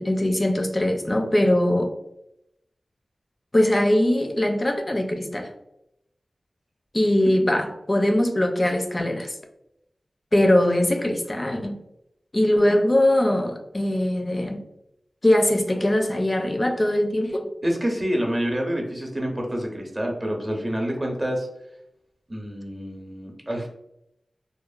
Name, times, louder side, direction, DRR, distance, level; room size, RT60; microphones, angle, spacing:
voice 1, 0.0-1.9 3.5-5.5 6.9-9.3 10.3-11.8 12.3-14.6 15.2-17.5, left 1 dB, 30° left, 4 dB, 0.4 m, -21 dB
voice 2, 17.6-21.5 22.3-23.7, equal, 25° right, 1 dB, 0.7 m, -27 dB
2.9 x 2.1 x 2.4 m, 0.82 s
wide cardioid pair, 60°, 0 cm